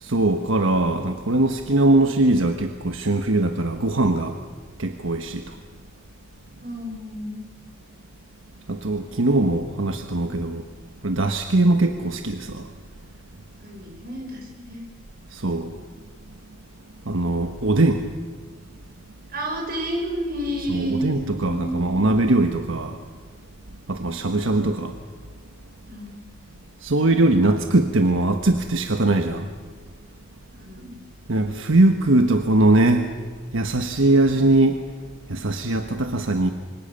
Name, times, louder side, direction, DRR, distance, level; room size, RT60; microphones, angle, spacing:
voice 1, 0.0-4.3 4.8-5.4 8.7-10.6 11.0-12.7 15.3-15.7 17.0-18.0 20.7-23.0 23.9-24.9 26.8-29.5 31.3-33.1 33.5-34.8 35.3-36.5, right 2 dB, 85° right, 6 dB, 1.3 m, -21 dB
voice 2, 6.6-7.4 13.6-14.9 19.3-21.8 25.9-26.2 30.5-30.9, right 1 dB, 50° right, 1 dB, 6.7 m, -31 dB
26.5 x 24.5 x 6.9 m, 1.5 s
head